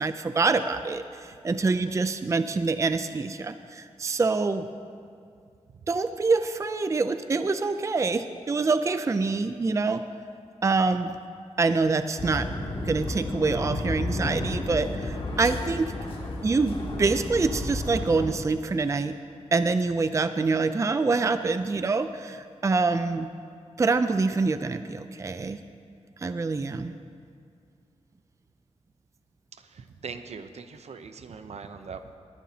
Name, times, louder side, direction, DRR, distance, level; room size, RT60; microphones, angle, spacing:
voice 1, 0.0-4.7 5.9-10.0 10.6-11.1 11.6-12.5 12.8-15.9 16.4-19.2 19.5-23.3 23.8-25.6 26.2-26.9, right 3 dB, 25° right, 10 dB, 0.4 m, -25 dB
sound 1, 12.2-18.3, left 1 dB, 50° left, 1.8 m, -32 dB
voice 2, 29.7-32.2, right 5 dB, 70° right, 9 dB, 0.7 m, -41 dB
20.0 x 11.5 x 2.8 m, 2.3 s
wide cardioid pair, 115°, 11 cm